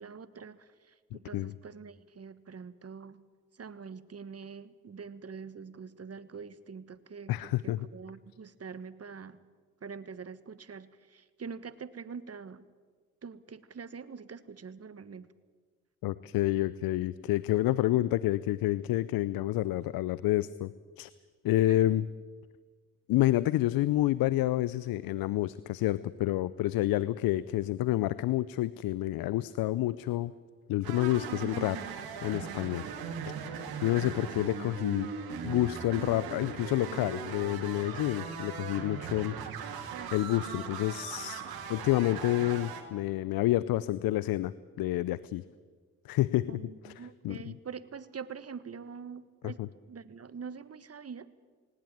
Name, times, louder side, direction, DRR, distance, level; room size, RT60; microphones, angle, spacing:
voice 1, 0.0-3.2 3.5-9.4 9.8-12.7 13.2-15.3 21.7-21.8 33.9-34.3 46.5-51.3, right 6 dB, 40° right, 14 dB, 1.4 m, -45 dB
voice 2, 1.1-1.5 7.3-7.9 16.0-21.1 21.4-22.1 23.1-30.3 30.7-31.8 32.2-32.9 33.8-35.1 35.4-39.4 39.7-39.8 40.1-41.4 41.7-45.4 46.0-46.9 47.2-47.5 49.4-49.7, left 15 dB, 70° left, 18 dB, 0.6 m, -29 dB
sound 1, 30.8-42.8, right 6 dB, 75° right, 2.3 m, -39 dB
19.0 x 18.5 x 8.9 m, 1.5 s
hypercardioid pair, 45°, 37 cm